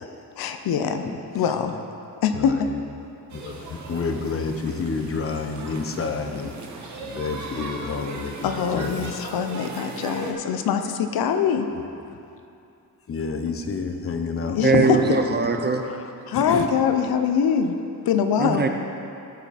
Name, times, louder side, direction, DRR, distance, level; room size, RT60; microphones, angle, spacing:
voice 1, 0.4-1.1 1.3-1.8 2.2-2.5 8.4-11.7 14.5-15.0 16.3-17.8 18.1-18.7, left 7 dB, 70° left, 7 dB, 0.7 m, -23 dB
voice 2, 1.1-1.5 2.4-2.8 3.3-6.5 7.0-9.1 11.7-11.8 13.1-14.6 15.3-15.4 15.8-16.0 16.3-16.7, left 4 dB, 35° left, 5 dB, 0.8 m, -29 dB
sound 1, 3.3-10.3, right 3 dB, 50° right, 1.2 m, -38 dB
voice 3, 14.6-15.8 18.4-18.7, right 4 dB, 25° right, 5 dB, 0.6 m, -21 dB
13.5 x 5.9 x 4.2 m, 2.7 s
cardioid pair, 110°, 37 cm